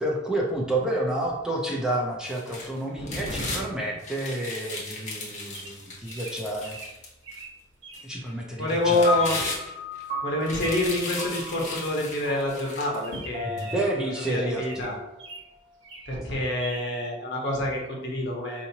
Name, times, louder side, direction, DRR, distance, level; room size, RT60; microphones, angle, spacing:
voice 1, 0.0-6.8 8.0-9.3 13.4-15.0, right 1 dB, 5° right, -3 dB, 0.5 m, -30 dB
sound 1, 2.3-3.6 4.0-7.4 7.9-8.0 8.7-10.0 10.4-13.1 13.6-13.7, left 2 dB, 40° left, 0.9 m, -36 dB
voice 2, 3.0-3.7 8.6-9.4 10.2-13.8 14.3-14.9 16.1-18.7, left 1 dB, 65° left, -1 dB, 1.1 m, -27 dB
Bird vocalization bird call bird song, 5.5-8.1 8.5-8.9 9.2-9.5 10.9-11.2 11.4-11.5 11.8-12.0 12.4-12.5 13.0-15.5 15.8-16.2 16.6-16.8, right 3 dB, 80° right, 1.0 m, -43 dB
sound 2, 9.0-15.5, left 3 dB, 50° right, 0.9 m, -35 dB
4.8 x 2.8 x 2.8 m, 0.90 s
head